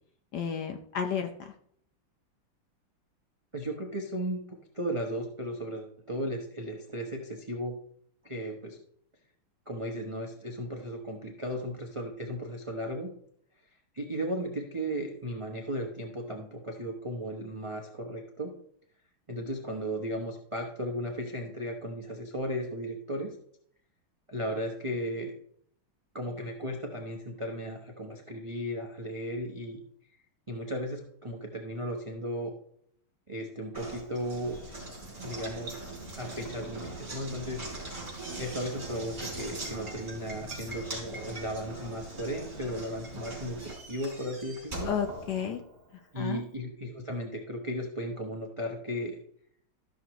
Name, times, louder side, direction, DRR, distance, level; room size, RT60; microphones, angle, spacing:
voice 1, 0.3-1.5 44.8-45.6 46.2-46.4, left 8 dB, 65° left, 6 dB, 1.1 m, -32 dB
voice 2, 3.5-7.8 8.2-8.8 9.7-13.1 13.9-18.5 19.3-23.4 24.3-25.3 26.1-29.8 30.5-32.5 33.3-34.6 35.2-37.6 38.4-44.9 46.1-49.2, equal, 50° right, 1 dB, 0.3 m, -35 dB
Knock, 33.7-45.9, right 2 dB, 25° right, 3.9 m, -41 dB
14.0 x 6.3 x 3.0 m, 0.65 s
omnidirectional pair, 2.4 m